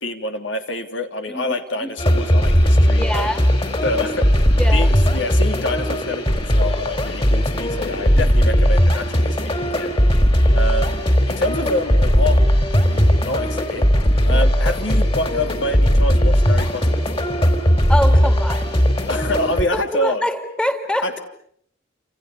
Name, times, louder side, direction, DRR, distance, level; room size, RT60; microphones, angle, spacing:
voice 1, 0.0-3.3 3.8-4.4 4.7-9.9 10.5-11.0 11.3-12.4 12.7-13.9 14.2-17.3 19.1-20.2 21.0-21.2, left 1 dB, 75° left, 6 dB, 3.1 m, -26 dB
sound 1, 2.0-19.6, equal, 30° left, 4.2 m, -17 dB
voice 2, 3.0-3.4 4.6-4.9 8.2-8.3 14.3-14.4 17.9-18.8 19.7-21.2, left 1 dB, 5° left, 7 dB, 2.5 m, -25 dB
29.0 x 28.0 x 7.0 m, 0.67 s
head